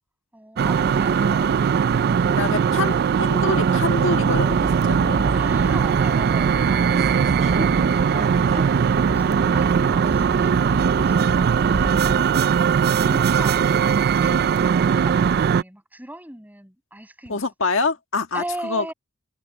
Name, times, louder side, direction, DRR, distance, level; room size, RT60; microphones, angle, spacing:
sound 1, 0.6-15.6, right 7 dB, 50° right, 0.3 m, -20 dB
voice 1, 2.4-2.9 3.2-5.2 17.3-18.8, left 3 dB, 70° left, 1.8 m, -25 dB
Subway metro underground, 4.2-12.2, right 1 dB, 35° right, 1.3 m, -30 dB
voice 2, 5.3-12.4 12.9-17.4 18.3-18.9, right 1 dB, 10° right, 7.7 m, -39 dB
head